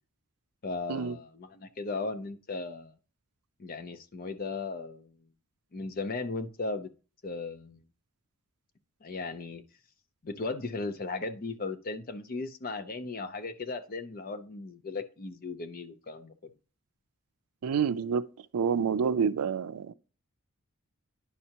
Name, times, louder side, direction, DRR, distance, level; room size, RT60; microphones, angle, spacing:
voice 1, 0.6-2.9 3.6-5.2 5.7-6.9 7.2-7.8 9.0-9.6 10.2-16.5, left 3 dB, 40° left, 0.6 m, -36 dB
voice 2, 17.6-18.2 18.5-19.9, right 6 dB, 85° right, 0.4 m, -28 dB
9.8 x 5.5 x 2.9 m
head